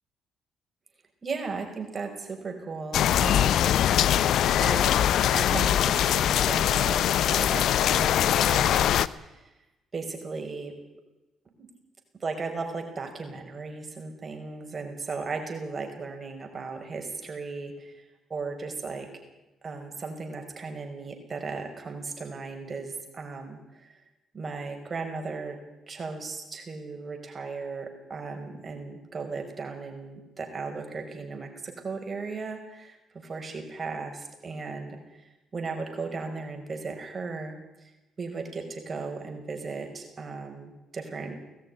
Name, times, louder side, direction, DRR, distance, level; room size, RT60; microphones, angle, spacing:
voice 1, 1.2-3.7 4.2-4.3 4.6-4.9 5.3-9.5 9.9-10.7 11.6-11.7 12.2-18.0 18.3-19.1 19.6-24.0 24.3-25.6 25.9-35.0 35.5-37.9 38.2-41.6, right 4 dB, 40° right, 4 dB, 5.5 m, -36 dB
sound 1, 2.9-9.1, left 11 dB, 70° left, 0.7 m, -22 dB
19.5 x 14.5 x 9.9 m, 1.0 s
supercardioid pair, 70°, 0 cm